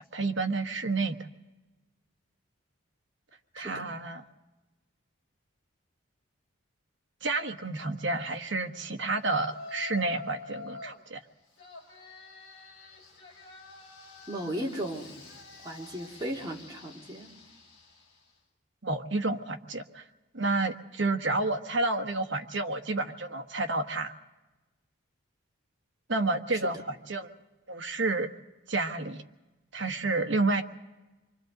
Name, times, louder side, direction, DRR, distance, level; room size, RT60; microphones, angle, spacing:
voice 1, 0.1-1.2 3.6-4.2 7.2-11.2 18.8-20.0 20.3-24.1 26.1-27.3 27.7-28.3 28.7-29.2 29.7-30.6, right 3 dB, 60° right, 5 dB, 1.2 m, -30 dB
Yell, 9.5-11.0 11.6-18.3, left 3 dB, 55° left, 5.5 m, -47 dB
voice 2, 14.3-15.1 15.6-17.3 26.6-26.7, right 1 dB, 20° right, -2 dB, 2.5 m, -36 dB
29.5 x 24.5 x 3.9 m, 1.1 s
head